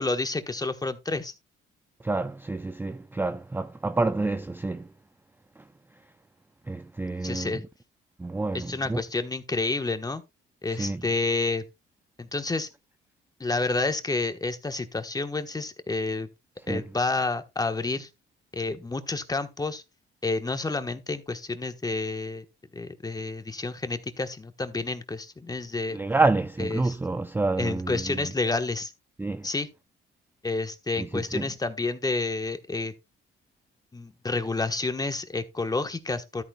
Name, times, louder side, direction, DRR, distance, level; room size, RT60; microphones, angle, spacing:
voice 1, 0.0-1.3 7.2-7.6 8.5-10.2 10.6-11.6 12.2-12.7 13.4-16.3 16.7-18.1 18.5-19.8 20.2-22.5 22.7-26.0 26.6-27.0 27.6-28.9 29.4-29.7 30.4-32.9 33.9-36.4, left 3 dB, 20° left, 1.2 m, -29 dB
voice 2, 2.0-4.9 5.6-5.7 6.7-7.6 8.2-9.0 10.7-11.0 16.7-16.9 25.9-28.3 29.2-29.5 31.0-31.5, right 3 dB, 10° right, 0.4 m, -28 dB
13.0 x 8.8 x 2.3 m
cardioid pair, 90°, 20 cm